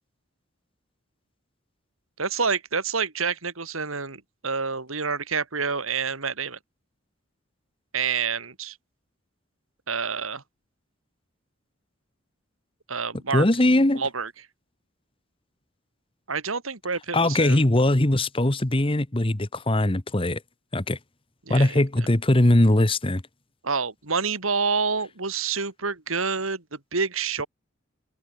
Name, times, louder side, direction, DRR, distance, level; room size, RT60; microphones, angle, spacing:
voice 1, 2.2-6.6 7.9-8.8 9.9-10.4 12.9-13.5 13.9-14.3 16.3-17.6 21.5-21.8 23.6-27.5, right 5 dB, 90° right, 2.7 m, -28 dB
voice 2, 13.3-14.0 17.1-20.4 20.7-21.0 21.5-23.2, left 1 dB, 25° left, 1.2 m, -21 dB
head